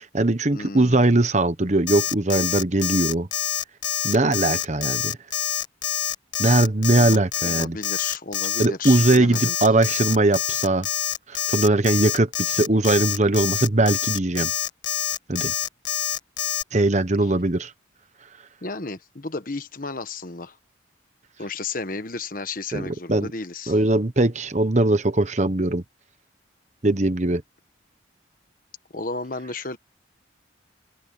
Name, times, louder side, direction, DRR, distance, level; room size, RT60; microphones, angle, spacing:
voice 1, 0.0-3.3 4.0-5.2 6.4-7.8 8.6-10.9 11.3-14.5 15.3-15.5 16.7-17.7 22.7-23.3 23.7-25.8 26.8-27.4, right 2 dB, 35° right, 1.1 m, -20 dB
voice 2, 0.5-1.2 6.9-9.5 18.6-20.6 21.4-23.7 28.9-29.8, left 3 dB, 45° left, 1.3 m, -33 dB
Alarm, 1.9-16.6, left 11 dB, 70° left, 1.7 m, -26 dB
head